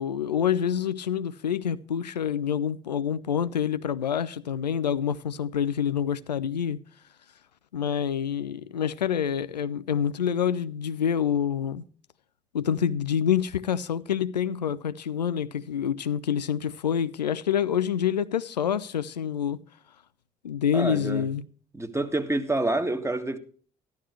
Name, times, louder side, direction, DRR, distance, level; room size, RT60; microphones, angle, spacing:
voice 1, 0.0-6.8 7.7-11.8 12.5-19.6 20.4-21.4, left 8 dB, 85° left, 0.4 m, -27 dB
voice 2, 20.7-21.2 21.7-23.4, right 2 dB, 15° right, 1.8 m, -27 dB
14.0 x 11.5 x 3.1 m
figure-of-eight pair, 50°, 21 cm